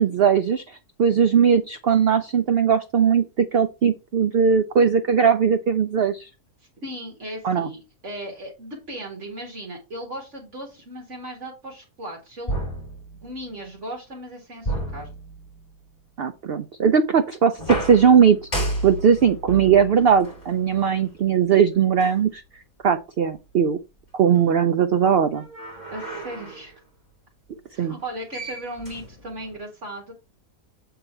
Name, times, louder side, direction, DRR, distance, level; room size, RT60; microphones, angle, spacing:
voice 1, 0.0-6.3 7.4-7.7 16.2-22.4 22.8-23.8 24.1-25.4 27.8-28.0, right 7 dB, 75° right, 10 dB, 0.5 m, -19 dB
voice 2, 6.8-12.7 13.1-15.1 25.9-26.8 27.7-30.1, right 1 dB, 50° right, 0 dB, 1.9 m, -37 dB
sound 1, 12.5-13.6 14.6-15.8 17.6-21.2 22.0-22.1 25.3-26.7 28.0-28.1 28.3-29.6, right 1 dB, 25° left, 3.3 m, -32 dB
8.0 x 3.8 x 4.3 m, 0.28 s
omnidirectional pair, 1.6 m